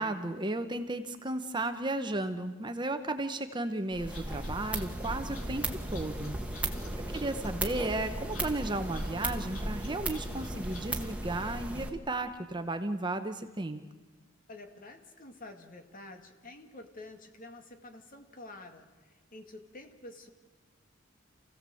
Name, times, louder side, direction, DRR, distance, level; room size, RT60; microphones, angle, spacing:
voice 1, 0.0-6.7 7.1-13.8, right 2 dB, 20° right, 8 dB, 1.0 m, -34 dB
sound 1, 3.9-11.9, right 1 dB, 5° right, 1.6 m, -36 dB
sound 2, 4.1-11.1, left 3 dB, 80° left, 3.1 m, -52 dB
voice 2, 6.6-6.9 14.5-20.3, left 2 dB, 40° left, 5 dB, 2.1 m, -49 dB
28.5 x 16.0 x 7.7 m, 1.3 s
head